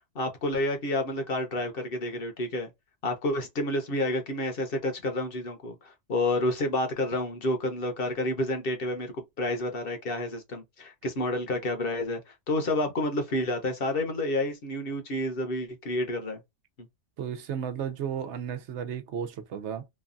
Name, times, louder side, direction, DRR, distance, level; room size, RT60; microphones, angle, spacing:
voice 1, 0.1-2.7 3.0-9.1 9.4-16.4, left 1 dB, 55° left, 1.0 m, -29 dB
voice 2, 17.2-19.9, right 8 dB, 80° right, 0.9 m, -34 dB
3.2 x 2.2 x 2.5 m
omnidirectional pair, 1.2 m